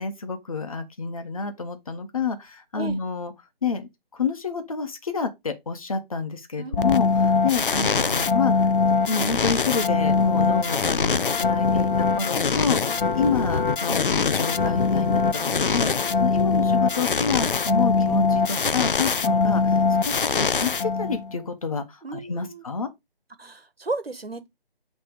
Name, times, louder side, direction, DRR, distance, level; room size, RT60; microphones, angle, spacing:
voice 1, 0.0-3.3 3.6-8.7 9.0-15.2 15.5-22.9, left 5 dB, 35° left, 1.3 m, -29 dB
voice 2, 6.6-7.1 22.0-22.6 23.4-24.5, right 3 dB, 75° right, 1.5 m, -34 dB
sound 1, 6.7-21.4, left 4 dB, 60° left, 0.6 m, -22 dB
8.8 x 3.4 x 5.1 m
figure-of-eight pair, 155°, 30 cm